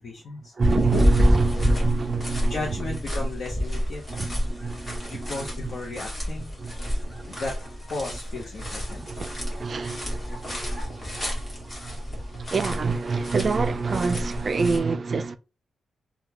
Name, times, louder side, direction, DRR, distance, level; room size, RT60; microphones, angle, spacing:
voice 1, 0.0-0.5 2.5-4.0 5.1-6.5 7.3-9.1, left 3 dB, 50° left, 0.7 m, -35 dB
sound 1, 0.6-14.8, equal, 20° left, 1.4 m, -28 dB
voice 2, 0.6-3.3 4.1-5.7 6.6-7.4 8.6-15.4, right 4 dB, 35° right, 0.4 m, -28 dB
3.5 x 2.3 x 2.8 m
wide cardioid pair, 155°, 0 cm